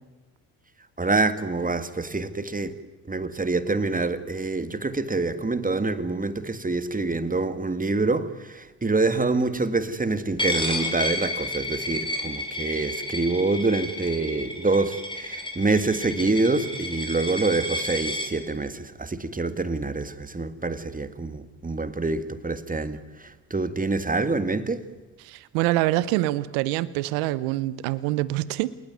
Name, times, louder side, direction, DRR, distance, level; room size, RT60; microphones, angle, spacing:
voice 1, 1.0-2.8 3.1-24.9, right 3 dB, 20° right, 1.9 m, -26 dB
Coin (dropping), 10.4-18.3, left 1 dB, 10° left, 5.3 m, -31 dB
voice 2, 25.2-28.7, right 17 dB, 80° right, 0.9 m, -25 dB
27.5 x 19.5 x 9.5 m
hypercardioid pair, 55°, 43 cm